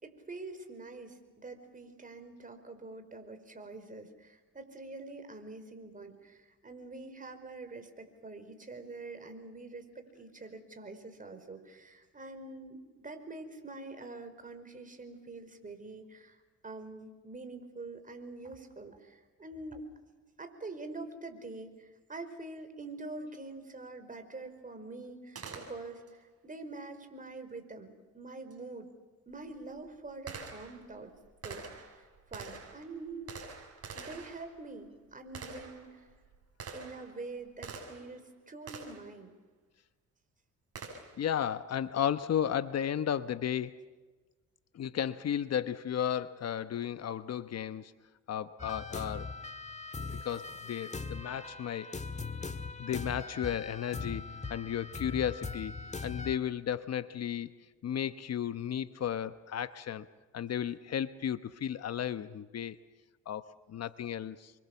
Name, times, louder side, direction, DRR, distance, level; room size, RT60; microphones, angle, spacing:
voice 1, 0.0-16.4 16.6-19.8 20.4-28.9 29.3-31.1 31.4-33.3 33.9-36.1 36.7-39.4, right 3 dB, 25° right, 7 dB, 4.9 m, -45 dB
Gunshot gunfire, 25.3-26.2 28.5-28.6 29.3-38.2 38.7-39.1 40.7-41.3, right 4 dB, 50° right, 6.9 m, -47 dB
voice 2, 41.2-43.8 44.7-47.9 48.3-49.3 50.2-51.9 52.8-57.5 57.8-60.1 60.3-62.8 63.3-64.5, left 9 dB, 55° left, 12 dB, 1.0 m, -34 dB
sound 1, 48.6-56.4, left 3 dB, 25° left, 1.8 m, -40 dB
29.0 x 24.5 x 7.2 m, 1.3 s
cardioid pair, 90°, 30 cm